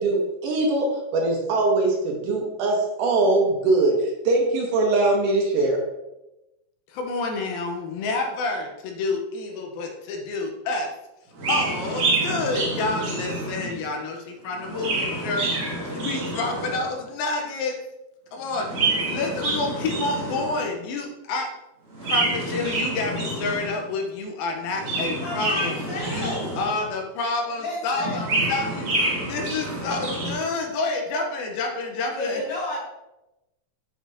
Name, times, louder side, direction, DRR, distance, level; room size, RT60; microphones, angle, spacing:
voice 1, 0.0-5.8, right 2 dB, 70° right, 0 dB, 2.3 m, -22 dB
voice 2, 6.9-10.9 11.5-17.8 18.3-21.5 22.1-25.8 26.1-28.9 29.2-32.4, left 3 dB, 85° left, 2 dB, 2.7 m, -29 dB
Chirp tweet, 11.4-13.8 14.5-17.0 18.5-20.7 21.9-23.8 24.6-26.9 28.0-30.5, right 2 dB, 50° right, 1.9 m, -27 dB
voice 3, 25.2-26.5 27.6-28.2 32.1-32.8, left 1 dB, 60° left, -6 dB, 3.5 m, -32 dB
7.7 x 5.8 x 2.7 m, 0.94 s
omnidirectional pair, 4.2 m